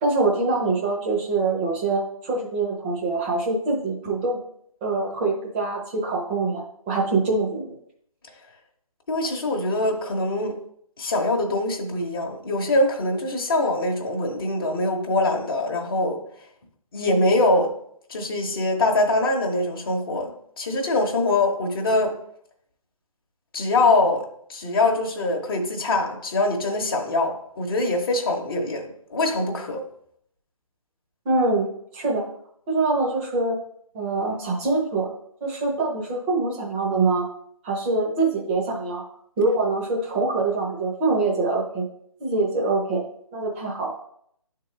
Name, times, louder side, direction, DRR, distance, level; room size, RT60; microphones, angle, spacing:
voice 1, 0.0-4.4 4.8-7.8 31.2-32.3 32.7-33.6 33.9-35.1 35.4-37.3 37.6-39.0 39.4-41.8 42.2-43.0 43.3-44.0, right 3 dB, 15° right, -1 dB, 1.0 m, -24 dB
voice 2, 9.1-10.6 11.0-16.2 16.9-17.7 18.1-22.1 23.5-24.2 24.5-29.8, left 2 dB, 40° left, 1 dB, 1.0 m, -23 dB
10.5 x 3.7 x 3.2 m, 0.68 s
figure-of-eight pair, 145°, 18 cm